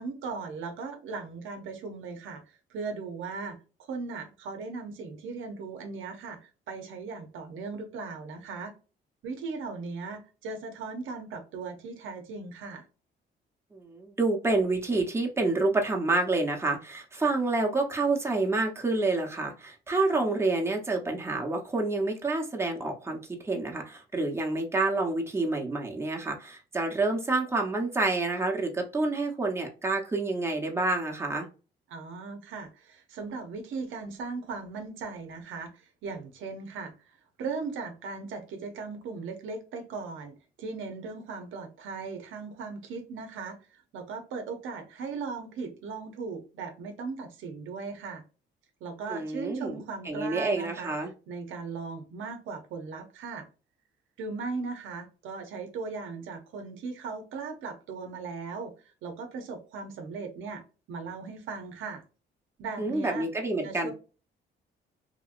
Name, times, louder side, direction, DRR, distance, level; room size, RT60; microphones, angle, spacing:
voice 1, 0.0-8.7 9.2-12.9 31.9-48.2 48.8-50.9 51.3-53.5 54.2-62.0 62.6-63.3 63.6-63.9, right 4 dB, 80° right, 0.7 m, -38 dB
voice 2, 13.7-31.5 49.1-51.1 62.8-63.9, right 2 dB, 15° right, 0.9 m, -28 dB
2.9 x 2.7 x 2.4 m
cardioid pair, 90°, 20 cm